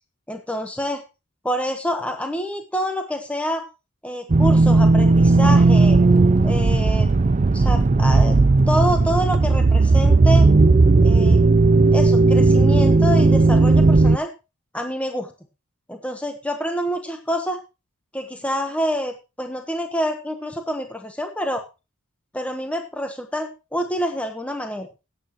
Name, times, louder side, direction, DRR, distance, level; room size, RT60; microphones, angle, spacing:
voice 1, 0.3-1.0 1.4-3.6 4.0-6.0 6.4-7.1 7.5-8.4 8.7-10.5 11.0-11.4 11.9-14.3 14.7-15.3 15.9-17.6 18.1-21.6 22.3-24.9, equal, 5° left, 4 dB, 1.1 m, -27 dB
sound 1, 4.3-14.2, right 3 dB, 35° right, 0.5 m, -15 dB
17.0 x 9.0 x 3.0 m, 0.29 s
head